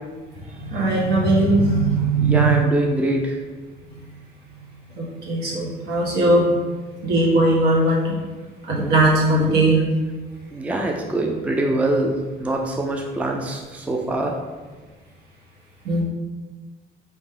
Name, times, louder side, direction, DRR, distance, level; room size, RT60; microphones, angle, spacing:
voice 1, 0.6-2.6 5.0-6.4 7.0-8.2 8.7-9.8 15.8-16.0, right 2 dB, 70° right, -4 dB, 1.5 m, -19 dB
voice 2, 2.2-3.4 10.5-14.3, right 1 dB, 10° right, 2 dB, 0.4 m, -24 dB
4.4 x 3.1 x 3.7 m, 1.4 s
cardioid pair, 110°, 17 cm